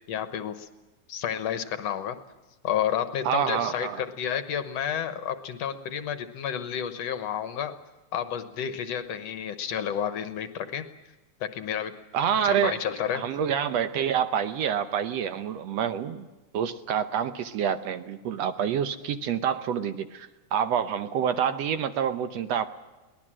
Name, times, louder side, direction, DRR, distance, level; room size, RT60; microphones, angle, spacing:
voice 1, 0.1-0.7 1.1-2.2 2.6-7.8 8.1-10.9 11.4-11.9 12.4-13.3, left 9 dB, 65° left, 11 dB, 2.1 m, -30 dB
voice 2, 3.3-4.0 12.1-12.8 13.1-16.3 16.5-22.7, right 8 dB, 70° right, 10 dB, 1.9 m, -27 dB
23.5 x 18.5 x 7.5 m, 1.1 s
omnidirectional pair, 3.4 m